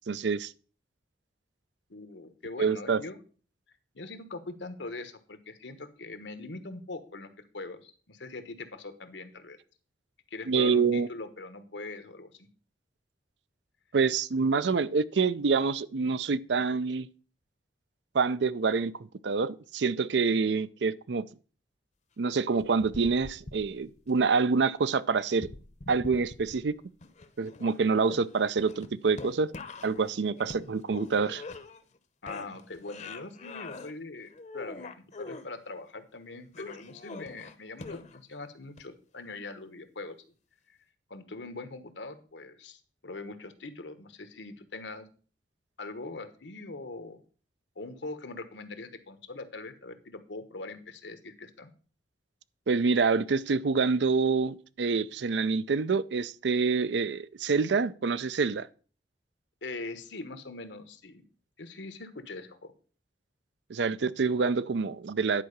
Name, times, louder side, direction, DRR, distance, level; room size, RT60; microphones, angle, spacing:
voice 1, 0.1-0.5 2.6-3.0 10.5-11.1 13.9-17.1 18.1-18.9 19.2-21.2 22.2-25.5 25.9-26.7 27.4-29.5 29.8-31.4 52.7-58.7 63.7-65.4, right 4 dB, 70° right, 0.5 m, -26 dB
voice 2, 1.9-3.2 3.9-9.6 10.3-12.5 32.2-40.1 40.7-40.8 41.1-45.1 45.8-47.2 47.7-51.7 59.6-61.2 61.6-62.7, left 3 dB, 85° left, 1.2 m, -42 dB
sound 1, 22.6-24.1 25.3-26.7 27.0-32.0 32.3-33.9 34.3-35.5 36.5-38.3 38.8-38.9, left 3 dB, 40° left, 0.8 m, -44 dB
10.5 x 4.8 x 6.6 m
head